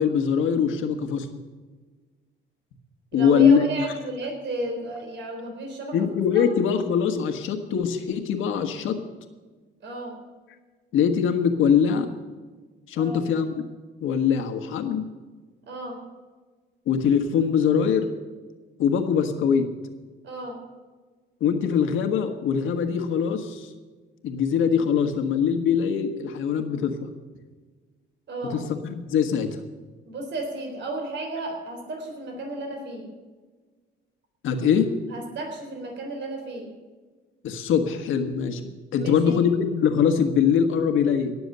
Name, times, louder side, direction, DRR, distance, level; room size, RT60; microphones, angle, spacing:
voice 1, 0.0-1.4 3.1-3.6 5.9-9.0 10.9-12.1 12.9-13.7 14.0-15.0 16.9-18.1 18.8-19.7 21.4-23.7 24.2-27.1 28.5-29.6 34.4-34.9 37.4-41.4, left 7 dB, 85° left, 6 dB, 1.6 m, -22 dB
voice 2, 3.1-6.1 6.3-6.5 9.8-10.2 13.0-13.2 15.7-16.0 20.2-20.6 28.3-28.6 30.1-33.1 35.1-36.7 38.9-39.4, right 2 dB, 65° right, 2 dB, 3.9 m, -33 dB
18.0 x 7.1 x 6.9 m, 1.4 s
cardioid pair, 90°, 20 cm